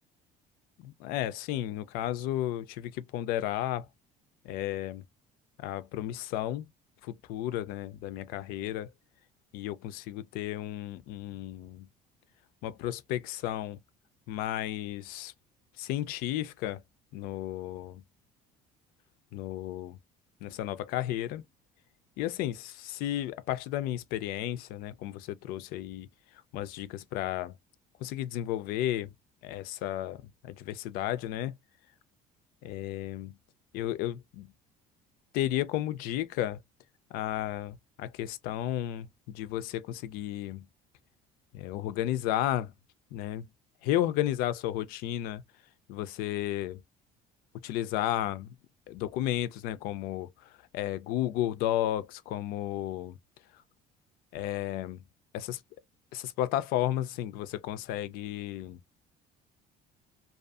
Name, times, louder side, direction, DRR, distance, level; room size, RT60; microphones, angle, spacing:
voice 1, 0.8-3.9 4.4-5.0 5.6-6.7 7.0-8.9 9.5-11.9 12.6-13.8 14.3-15.3 15.8-16.8 17.1-18.0 19.3-20.0 20.4-21.4 22.2-26.1 26.5-27.5 28.0-29.1 29.4-31.6 32.6-33.3 33.7-34.5 35.3-36.6 37.1-40.6 41.5-42.7 43.1-43.5 43.8-45.4 45.9-46.8 47.6-48.5 48.9-53.2 54.3-55.0 55.3-55.6 56.1-58.8, left 13 dB, 75° left, 0.4 m, -33 dB
2.6 x 2.3 x 2.3 m
cardioid pair, 155°, 15 cm